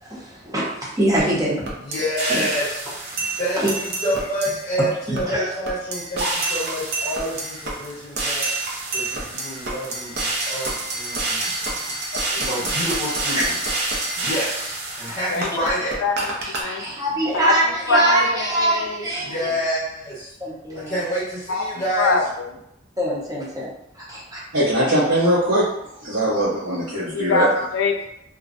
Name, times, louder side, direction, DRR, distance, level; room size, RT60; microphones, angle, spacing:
voice 1, 0.0-1.8 2.3-2.5 3.2-3.3 3.6-3.7 4.8-5.5 13.4-13.5 16.6-19.5 20.4-20.9 23.0-24.4, right 1 dB, 20° right, -6 dB, 0.7 m, -23 dB
sound 1, 1.2-1.3 1.7-4.7 5.2-5.3 5.7-16.6, right 2 dB, 60° right, 0.5 m, -27 dB
voice 2, 1.7-2.8 3.4-11.7 12.4-13.6 14.2-16.0 19.2-20.3 20.7-22.2, equal, 35° left, -10 dB, 0.9 m, -28 dB
voice 3, 16.0-16.8 17.3-19.1 21.5-21.6 22.0-22.5 27.0-28.1, left 3 dB, 70° left, 4 dB, 0.4 m, -24 dB
voice 4, 24.5-27.6, right 1 dB, 85° right, -12 dB, 1.0 m, -21 dB
2.5 x 2.1 x 2.5 m, 0.80 s
head